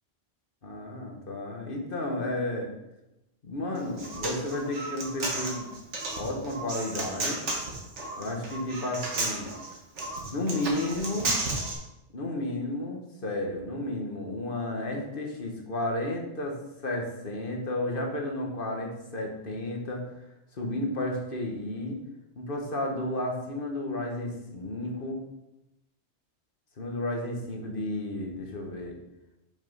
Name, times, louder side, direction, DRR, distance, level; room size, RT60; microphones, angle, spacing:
voice 1, 0.6-2.7 3.4-5.7 6.2-7.4 8.2-9.5 10.2-11.3 12.1-20.0 20.5-22.0 22.3-25.2 26.8-29.0, left 1 dB, 50° left, 1 dB, 1.5 m, -32 dB
Human voice, 3.8-11.7, right 2 dB, 80° right, 1.8 m, -33 dB
5.8 x 5.7 x 5.5 m, 0.92 s
omnidirectional pair, 1.2 m